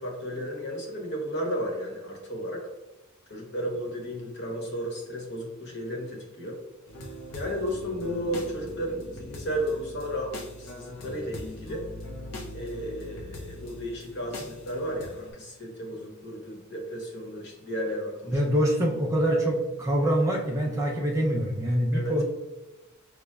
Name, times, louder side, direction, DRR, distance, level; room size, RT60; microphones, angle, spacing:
voice 1, 0.0-2.6 3.3-6.6 7.3-11.8 12.5-18.4 21.9-22.1, equal, 55° left, 0 dB, 0.9 m, -33 dB
sound 1, 6.9-15.3, left 1 dB, 80° left, 0.6 m, -41 dB
voice 2, 18.3-22.2, equal, 15° right, -1 dB, 0.4 m, -25 dB
5.7 x 2.0 x 2.2 m, 1.1 s
head